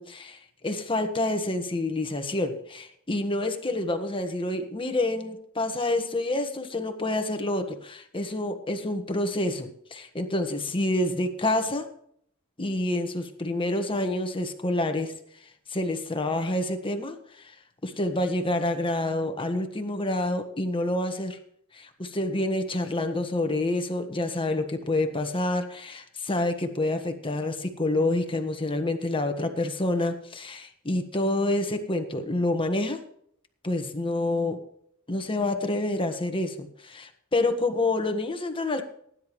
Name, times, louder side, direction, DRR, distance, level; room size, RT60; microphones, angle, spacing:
voice 1, 0.0-11.9 12.6-15.1 15.7-17.5 17.8-21.4 21.7-33.0 33.6-34.6 35.1-38.8, left 2 dB, 25° left, 6 dB, 1.4 m, -28 dB
18.5 x 10.5 x 3.2 m, 0.67 s
head